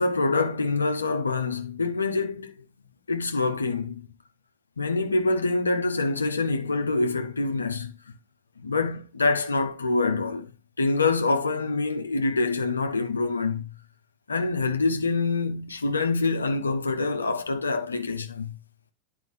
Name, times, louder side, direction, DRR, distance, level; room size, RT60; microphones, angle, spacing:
voice 1, 0.0-2.5 3.1-4.0 4.8-7.9 8.6-10.5 10.8-13.7 14.3-18.5, left 3 dB, 75° left, 1.1 m, -25 dB
11.0 x 5.1 x 3.4 m
figure-of-eight pair, 90°, 0 cm